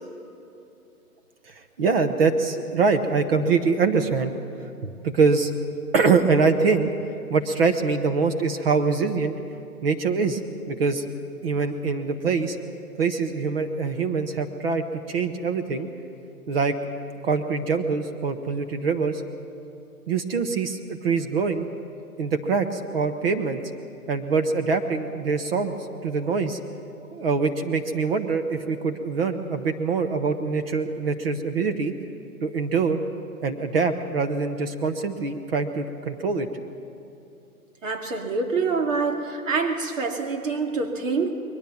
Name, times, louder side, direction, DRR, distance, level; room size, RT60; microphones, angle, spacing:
voice 1, 1.8-4.3 4.8-5.5 5.9-6.9 7.3-9.3 9.8-10.4 10.7-11.0 11.4-12.6 13.0-15.9 16.5-16.7 17.2-19.2 20.1-21.6 22.2-23.6 24.1-25.7 26.0-26.6 27.1-31.9 32.4-33.0 33.4-36.5, right 4 dB, 40° right, 7 dB, 1.1 m, -24 dB
voice 2, 37.8-41.3, right 4 dB, 55° right, 3 dB, 2.4 m, -26 dB
21.5 x 19.5 x 7.2 m, 2.7 s
hypercardioid pair, 155°, 45 cm